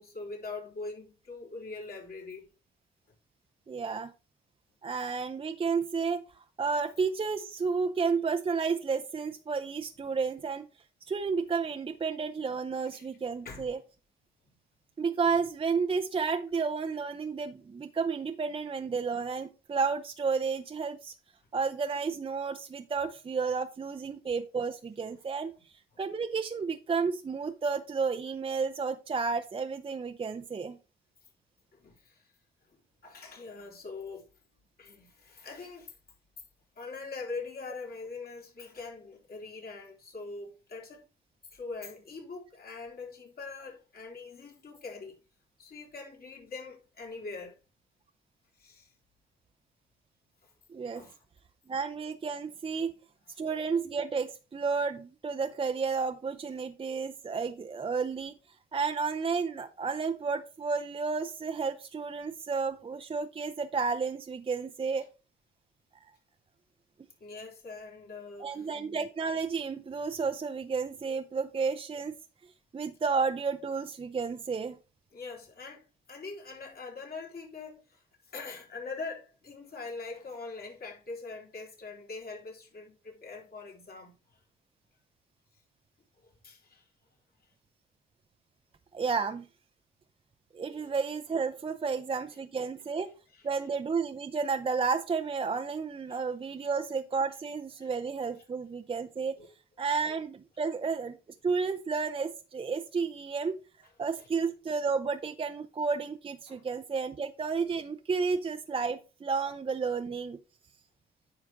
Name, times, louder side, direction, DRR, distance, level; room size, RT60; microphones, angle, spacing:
voice 1, 0.0-2.5 12.9-13.1 13.4-13.7 31.7-32.3 33.0-34.3 34.8-35.9 36.8-41.1 41.5-45.2 45.6-47.6 48.6-48.9 50.4-50.5 50.9-51.2 67.2-68.7 75.1-84.4 86.2-86.9 90.7-90.9 91.9-92.0 93.3-93.5 96.1-96.2 96.6-96.7 97.8-97.9 99.4-99.5 103.8-103.9 104.2-104.3 106.5-106.6, left 4 dB, 50° left, 3.7 m, -43 dB
voice 2, 3.7-4.1 4.8-10.7 11.1-13.8 15.0-21.1 21.5-30.8 50.7-51.0 51.7-52.9 53.4-58.3 58.7-65.1 68.4-72.2 72.7-74.8 88.9-89.5 90.5-93.1 93.4-99.4 99.8-101.2 101.4-103.5 104.0-110.4, right 5 dB, 25° right, 0.6 m, -32 dB
9.3 x 5.8 x 3.5 m
cardioid pair, 90°, 20 cm